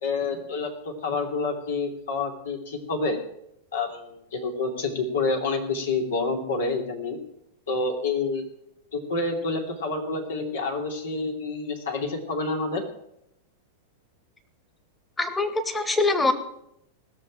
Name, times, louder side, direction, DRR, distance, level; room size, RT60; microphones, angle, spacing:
voice 1, 0.0-3.2 3.7-7.2 7.7-8.4 8.9-12.8, left 3 dB, 65° left, 2 dB, 3.1 m, -28 dB
voice 2, 15.2-16.3, left 3 dB, 10° left, 10 dB, 1.9 m, -23 dB
20.0 x 6.9 x 8.9 m, 0.78 s
figure-of-eight pair, 95°, 0 cm